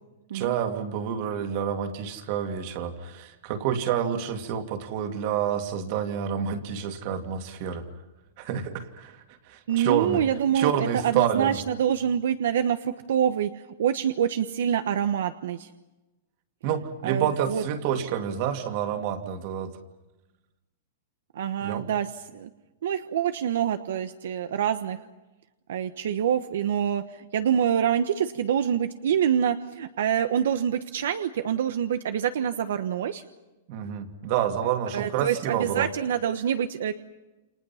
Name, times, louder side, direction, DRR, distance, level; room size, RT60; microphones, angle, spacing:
voice 1, 0.3-7.9 8.4-10.2 10.5-11.6 16.6-19.8 21.6-21.9 33.7-35.9, right 9 dB, 40° right, 6 dB, 2.4 m, -28 dB
voice 2, 9.7-13.5 13.8-15.7 17.0-17.6 21.3-22.1 22.3-22.5 22.8-25.0 25.7-33.2 34.9-36.9, right 9 dB, 75° right, 9 dB, 1.2 m, -26 dB
29.0 x 28.0 x 5.8 m, 1.1 s
supercardioid pair, 170°, 0 cm